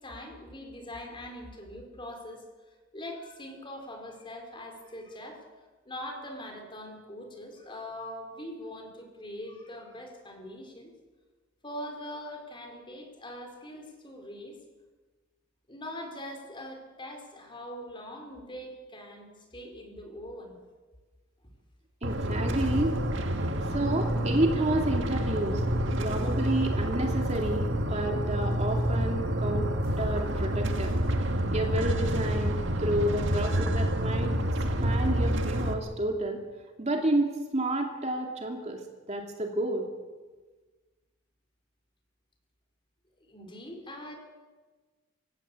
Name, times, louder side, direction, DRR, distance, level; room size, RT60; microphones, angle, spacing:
voice 1, 0.0-5.4 5.8-10.9 11.6-14.6 15.7-20.6 43.2-44.2, left 1 dB, 25° left, 3 dB, 4.4 m, -42 dB
voice 2, 22.0-22.9 23.7-25.6 26.0-29.7 30.0-30.9 31.5-34.3 34.8-36.4 36.8-38.8 39.1-39.9, right 1 dB, 35° right, 2 dB, 2.5 m, -30 dB
sound 1, 22.0-35.7, right 1 dB, 60° right, 2.1 m, -28 dB
27.0 x 16.5 x 8.3 m, 1.3 s
head